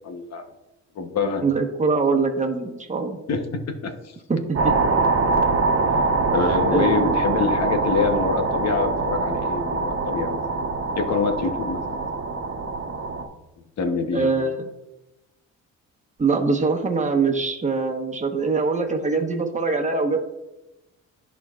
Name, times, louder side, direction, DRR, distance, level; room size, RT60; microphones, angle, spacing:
voice 1, 0.0-0.5 0.9-1.4 3.3-3.4 3.8-4.1 5.8-10.7 10.9-12.2 13.8-14.3, left 4 dB, 60° left, 6 dB, 1.0 m, -26 dB
voice 2, 1.4-3.2 4.3-4.7 6.4-7.1 14.1-14.7 16.2-20.2, right 4 dB, 25° right, 2 dB, 1.2 m, -23 dB
sound 1, 4.6-13.3, right 3 dB, 50° right, 1.2 m, -23 dB
13.5 x 4.6 x 2.4 m, 0.94 s
cardioid pair, 90°, 30 cm